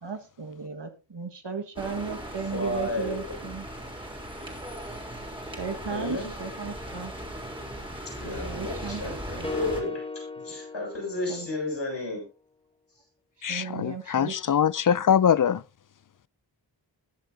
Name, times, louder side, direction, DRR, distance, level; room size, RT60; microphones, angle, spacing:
voice 1, 0.0-3.7 5.6-7.1 8.5-9.5 11.3-11.5 13.5-14.6, right 5 dB, 70° right, 1.8 m, -35 dB
sound 1, 1.8-9.8, right 1 dB, 10° right, 3.6 m, -38 dB
voice 2, 2.5-3.4 5.9-6.3 8.2-10.0 10.4-12.2, left 2 dB, 75° left, 7.7 m, -32 dB
sound 2, 9.4-11.8, left 3 dB, 15° left, 1.3 m, -36 dB
voice 3, 13.4-15.6, left 8 dB, 50° left, 0.4 m, -23 dB
20.5 x 7.6 x 2.8 m
wide cardioid pair, 55°, 44 cm